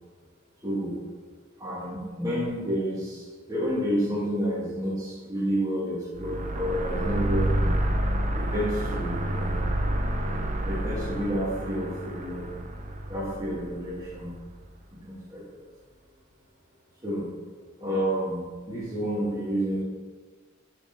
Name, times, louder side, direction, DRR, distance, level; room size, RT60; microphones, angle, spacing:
voice 1, 0.6-1.0 1.6-7.8 8.3-9.5 10.6-12.5 13.1-14.4 14.9-15.4 17.0-17.2 17.8-18.4 18.7-19.8, equal, 15° right, -7 dB, 1.7 m, -30 dB
sound 1, 6.2-14.5, right 1 dB, 40° right, 0.7 m, -29 dB
9.8 x 3.9 x 5.2 m, 1.4 s
head